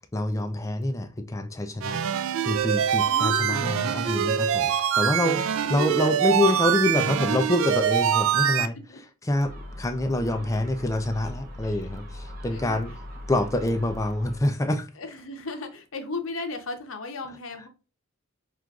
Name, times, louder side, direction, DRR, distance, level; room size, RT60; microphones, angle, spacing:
voice 1, 0.1-2.0 2.5-5.4 5.7-8.8 9.2-12.9 13.3-14.9, left 1 dB, 15° left, 0.4 m, -26 dB
sound 1, 1.8-8.7, right 9 dB, 65° right, 0.3 m, -24 dB
voice 2, 3.0-3.8 5.1-6.2 6.5-6.7 7.0-7.3 8.6-8.7 8.9-9.0 11.6-11.8 12.5-12.8 15.0-17.7, left 3 dB, 65° left, 0.8 m, -36 dB
Gull seagull, 9.4-14.4, left 1 dB, 40° right, 0.7 m, -40 dB
6.1 x 2.5 x 2.3 m
head